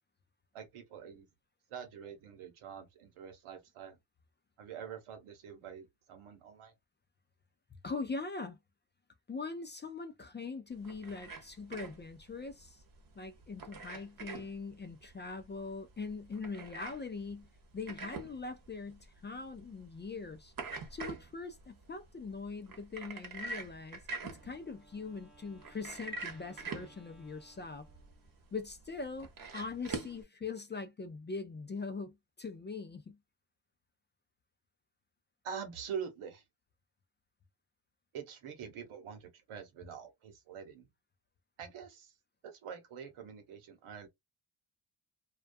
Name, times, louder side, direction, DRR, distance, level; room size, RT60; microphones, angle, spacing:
voice 1, 0.5-1.3 1.7-4.0 4.6-6.7 35.4-36.4 38.1-40.9 41.6-42.1 42.4-44.1, right 7 dB, 85° right, 1.0 m, -45 dB
voice 2, 7.8-8.6 9.3-12.8 13.2-17.5 17.7-20.5 20.9-27.9 28.5-33.2, left 4 dB, 25° left, 0.3 m, -42 dB
sound 1, 10.7-30.2, right 3 dB, 45° right, 0.9 m, -46 dB
Wind instrument woodwind instrument, 24.3-28.4, right 1 dB, ahead, 0.7 m, -62 dB
2.3 x 2.2 x 2.5 m
cardioid pair, 75°, 49 cm